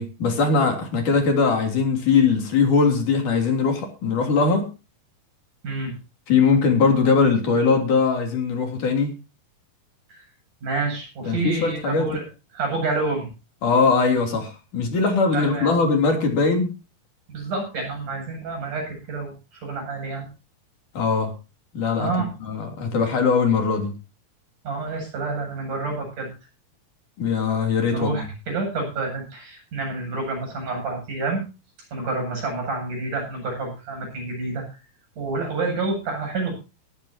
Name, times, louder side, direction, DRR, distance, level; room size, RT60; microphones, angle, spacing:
voice 1, 0.0-4.7 6.3-9.1 11.2-12.2 13.6-16.7 20.9-21.3 21.7-23.9 27.2-28.2, left 4 dB, 60° left, 4 dB, 4.6 m, -21 dB
voice 2, 5.6-5.9 10.1-10.2 10.6-12.2 12.5-13.3 15.3-15.8 17.3-20.3 22.0-22.3 24.6-26.3 27.9-31.4 31.9-34.7 35.2-36.5, right 3 dB, 60° right, 1 dB, 9.7 m, -28 dB
18.5 x 14.5 x 2.9 m, 0.31 s
omnidirectional pair, 4.1 m